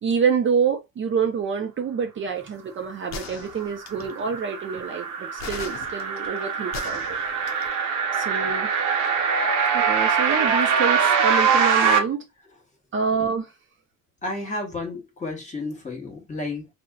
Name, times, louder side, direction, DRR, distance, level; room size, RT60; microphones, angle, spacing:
voice 1, 0.0-7.2 8.1-8.7 9.7-12.3 12.9-13.5, right 6 dB, 40° right, 0.5 m, -27 dB
sound 1, 3.1-4.2 5.4-7.7, left 6 dB, 65° left, 0.6 m, -38 dB
sound 2, 3.6-12.0, right 6 dB, 80° right, 0.7 m, -23 dB
voice 2, 14.2-16.7, left 2 dB, 25° left, 1.1 m, -32 dB
2.5 x 2.2 x 2.2 m
cardioid pair, 90°, 30 cm